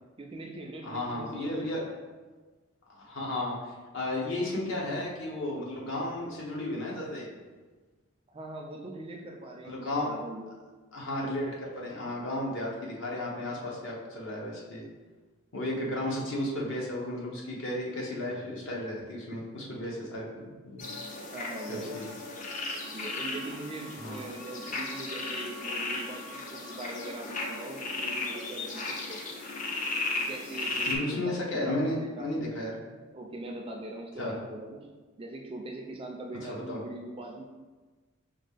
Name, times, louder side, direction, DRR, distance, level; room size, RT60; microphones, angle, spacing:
voice 1, 0.2-1.9 8.3-10.5 21.3-22.0 22.8-29.2 30.3-32.3 33.1-34.9 35.2-37.5, right 2 dB, 25° right, 1 dB, 0.4 m, -41 dB
voice 2, 0.8-1.8 3.0-3.6 3.9-7.3 9.6-10.1 10.9-14.8 15.5-20.9 21.7-22.1 24.0-24.2 30.9-32.7 34.2-34.3 36.5-36.8, left 1 dB, 60° left, -3 dB, 0.9 m, -33 dB
sound 1, 20.8-30.9, left 2 dB, 35° left, 0.5 m, -35 dB
5.1 x 2.4 x 3.3 m, 1.3 s
head